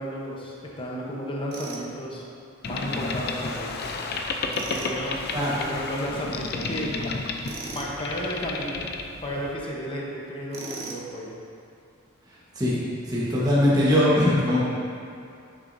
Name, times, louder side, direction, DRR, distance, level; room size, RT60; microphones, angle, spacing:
voice 1, 0.0-2.3 2.6-3.7 4.7-5.2 5.7-6.9 7.7-8.9 9.2-11.3, equal, 25° left, -3 dB, 1.0 m, -33 dB
Tools, 1.5-1.9 4.5-5.0 7.4-7.9 10.5-11.1, right 3 dB, 50° right, 0.8 m, -37 dB
Boat Water vehicle, 2.6-9.5, left 3 dB, 45° left, 0.5 m, -32 dB
voice 2, 13.1-14.6, left 1 dB, 20° right, -8 dB, 1.3 m, -21 dB
10.5 x 6.1 x 2.7 m, 2.5 s
head